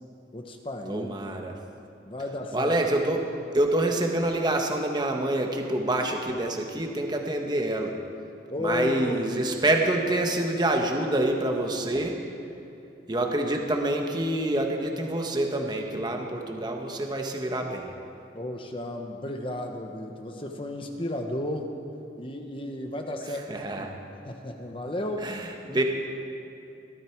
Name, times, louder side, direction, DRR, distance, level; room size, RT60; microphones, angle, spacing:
voice 1, 0.3-1.1 2.1-2.7 8.5-9.2 18.3-21.8 22.2-23.9 24.2-25.3, left 1 dB, 30° left, 3 dB, 1.1 m, -33 dB
voice 2, 0.9-1.5 2.5-3.3 3.5-8.0 8.6-12.2 13.1-17.9 23.5-23.9 25.2-25.8, right 1 dB, 25° right, 2 dB, 1.2 m, -27 dB
22.0 x 13.0 x 4.6 m, 2.8 s
head